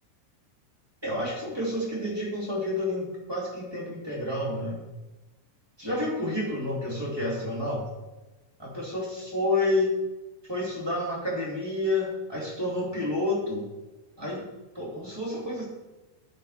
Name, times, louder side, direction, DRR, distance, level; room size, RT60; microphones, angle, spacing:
voice 1, 1.0-4.8 5.8-7.8 8.6-9.9 10.5-13.6 14.2-14.5 14.7-15.6, left 1 dB, 10° right, -5 dB, 1.1 m, -29 dB
10.5 x 9.7 x 4.3 m, 1.1 s
omnidirectional pair, 5.2 m